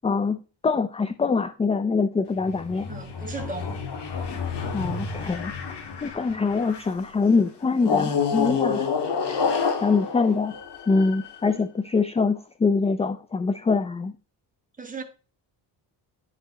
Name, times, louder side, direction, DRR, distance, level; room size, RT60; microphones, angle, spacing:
voice 1, 0.0-2.9 4.7-5.5 6.0-8.9 9.3-9.4 9.8-10.6 10.9-14.1, left 4 dB, 15° left, 0.3 m, -24 dB
sound 1, 2.4-7.0 7.8-11.4, left 5 dB, 65° left, 1.8 m, -29 dB
voice 2, 2.9-3.8 14.8-15.0, right 4 dB, 20° right, 1.7 m, -35 dB
10.0 x 4.5 x 4.2 m
cardioid pair, 120°, 44 cm